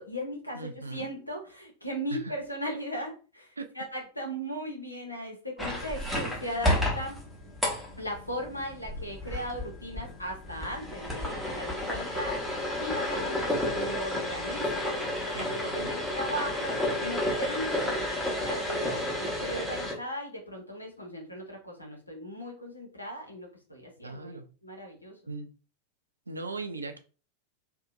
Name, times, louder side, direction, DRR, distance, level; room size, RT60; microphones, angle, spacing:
voice 1, 0.0-7.2 8.0-12.4 12.8-24.4 24.6-25.1, equal, 85° left, 0.8 m, -38 dB
voice 2, 0.5-1.1 2.1-2.3 3.6-3.7 15.3-15.9 24.0-24.4 25.3-25.5 26.3-27.0, right 3 dB, 80° right, 0.3 m, -38 dB
sound 1, 5.6-19.9, left 1 dB, ahead, 0.9 m, -31 dB
2.7 x 2.1 x 2.4 m
figure-of-eight pair, 90°, 0 cm